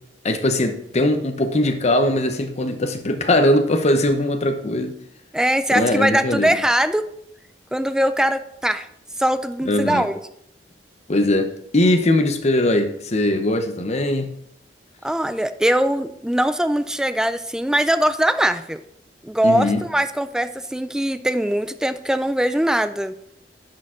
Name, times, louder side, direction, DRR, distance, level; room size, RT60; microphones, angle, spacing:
voice 1, 0.2-4.9 5.7-6.6 9.7-10.1 11.1-14.3 19.4-19.8, left 1 dB, 40° left, 7 dB, 0.8 m, -20 dB
voice 2, 5.3-7.0 7.7-8.9 9.2-10.1 15.0-18.8 19.2-23.1, right 1 dB, 5° right, 11 dB, 0.3 m, -21 dB
10.5 x 4.7 x 3.7 m, 0.73 s
head